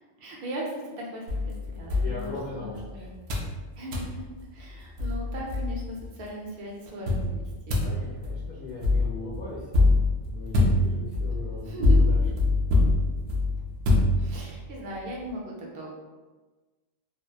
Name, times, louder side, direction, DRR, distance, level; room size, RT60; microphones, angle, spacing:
voice 1, 0.2-3.1 3.8-7.8 11.6-12.0 14.2-15.9, right 1 dB, 60° right, -2 dB, 0.7 m, -38 dB
sound 1, 1.3-2.8 3.3-3.6 3.9-4.2 4.7-4.8 5.0-6.1 7.1-14.6, left 2 dB, 90° right, 0.9 m, -24 dB
voice 2, 2.0-3.1 7.6-12.2 12.5-12.8, left 3 dB, 55° left, -9 dB, 0.5 m, -39 dB
2.8 x 2.0 x 2.3 m, 1.3 s
omnidirectional pair, 1.2 m